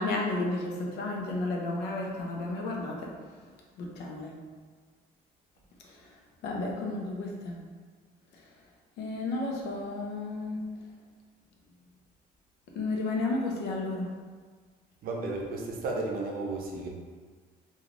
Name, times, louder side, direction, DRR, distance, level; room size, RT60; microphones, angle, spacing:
voice 1, 0.0-3.1 3.8-4.3 5.8-7.6 8.3-8.5 9.0-10.6 12.7-14.2, left 2 dB, 75° left, 0 dB, 0.6 m, -32 dB
voice 2, 15.0-16.9, right 2 dB, 60° right, 0 dB, 0.6 m, -33 dB
3.1 x 2.3 x 2.4 m, 1.5 s
cardioid pair, 110°, 17 cm